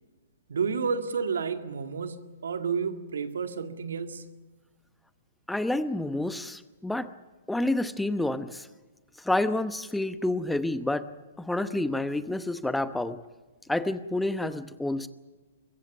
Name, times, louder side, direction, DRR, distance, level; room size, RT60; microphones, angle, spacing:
voice 1, 0.5-4.3, right 5 dB, 70° right, 7 dB, 2.0 m, -31 dB
voice 2, 5.5-7.1 7.5-8.7 9.2-11.1 11.4-13.2 13.7-15.1, left 2 dB, 5° left, 12 dB, 0.9 m, -29 dB
24.0 x 22.0 x 7.1 m, 1.2 s
figure-of-eight pair, 120°, 0 cm